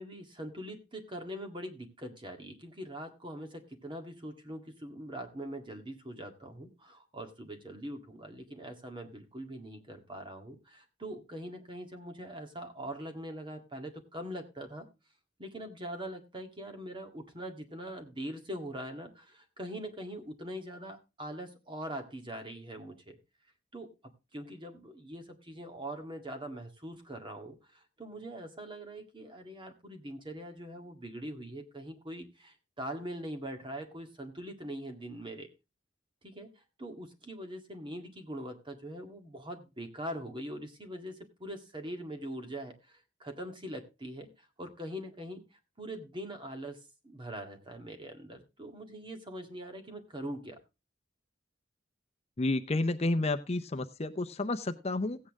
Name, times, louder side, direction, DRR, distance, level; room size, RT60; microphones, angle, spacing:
voice 1, 0.0-14.9 15.4-23.2 23.7-23.9 24.3-35.5 36.2-36.5 36.8-50.6, right 1 dB, 25° right, 5 dB, 1.9 m, -42 dB
voice 2, 52.4-55.2, left 2 dB, 35° left, 8 dB, 0.6 m, -30 dB
15.5 x 8.6 x 3.6 m, 0.27 s
head